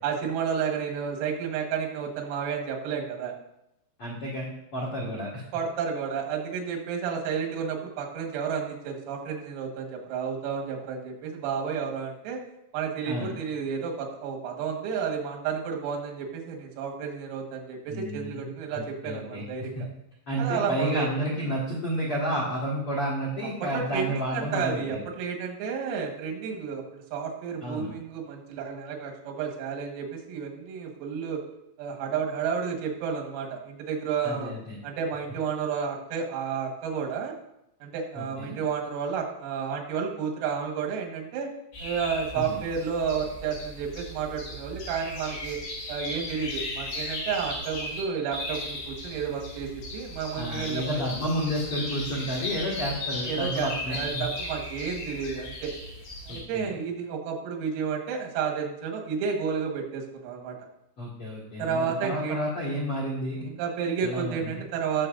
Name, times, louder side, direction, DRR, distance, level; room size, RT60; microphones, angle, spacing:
voice 1, 0.0-3.3 5.5-12.4 12.7-19.8 20.4-21.1 23.6-31.4 31.8-34.5 34.8-37.4 37.8-41.5 41.8-45.6 45.9-50.8 53.2-55.7 56.3-60.6 61.6-62.4 63.5-65.1, right 6 dB, 85° right, 1 dB, 4.3 m, -31 dB
voice 2, 4.0-5.4 13.0-13.3 17.9-19.4 19.7-19.8 20.3-25.0 27.6-27.9 34.2-34.8 38.1-38.6 42.3-42.6 50.3-54.2 56.3-56.8 61.0-63.4 64.0-64.6, equal, 80° left, -4 dB, 1.3 m, -31 dB
sound 1, 41.7-48.0 48.3-56.4, left 2 dB, 60° left, 4.0 m, -36 dB
19.0 x 7.0 x 2.6 m, 0.84 s
omnidirectional pair, 6.0 m